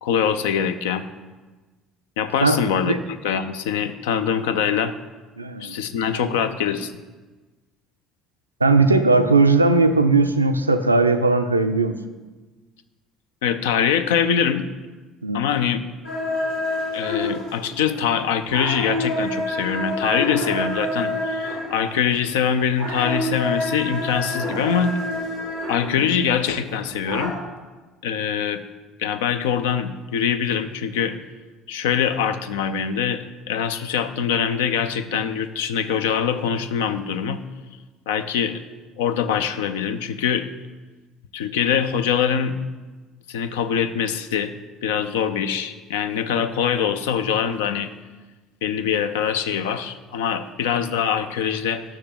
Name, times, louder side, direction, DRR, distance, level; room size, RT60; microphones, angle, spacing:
voice 1, 0.0-1.0 2.2-3.0 3.2-4.9 5.6-6.9 13.4-14.7 15.3-15.8 16.9-25.0 25.7-27.4 28.0-28.6 29.0-31.2 31.7-37.4 38.1-38.6 39.0-40.5 41.3-42.6 43.3-44.5 44.8-47.9 48.6-51.8, left 8 dB, 70° left, 11 dB, 0.4 m, -23 dB
voice 2, 2.4-3.0 5.4-5.8 6.2-6.3 8.6-11.9 15.2-15.5 25.9-26.0, right 3 dB, 85° right, 8 dB, 0.3 m, -18 dB
sound 1, 16.0-27.3, left 1 dB, 85° left, 2.7 m, -28 dB
6.5 x 5.9 x 7.0 m, 1.3 s
figure-of-eight pair, 55°, 0 cm